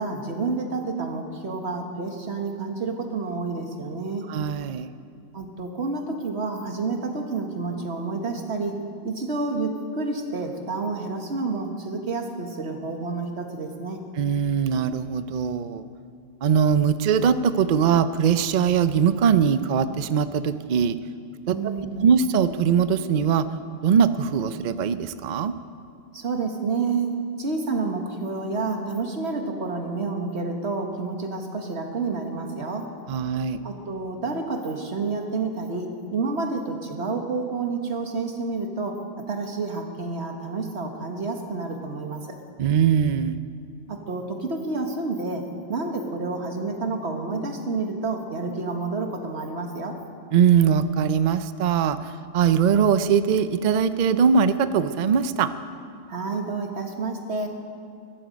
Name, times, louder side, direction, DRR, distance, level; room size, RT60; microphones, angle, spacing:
voice 1, 0.0-4.2 5.3-8.7 9.0-14.0 21.5-22.1 26.1-27.1 27.4-32.9 33.6-39.0 39.3-42.3 43.9-45.4 45.7-50.0 56.1-57.5, right 3 dB, 50° right, 4 dB, 1.7 m, -29 dB
voice 2, 4.3-4.9 14.2-15.9 16.4-21.0 21.5-21.6 22.0-23.5 23.8-25.5 33.1-33.6 42.6-43.4 50.3-55.5, right 7 dB, 65° right, 12 dB, 0.4 m, -21 dB
22.5 x 12.0 x 5.2 m, 2.5 s
omnidirectional pair, 1.4 m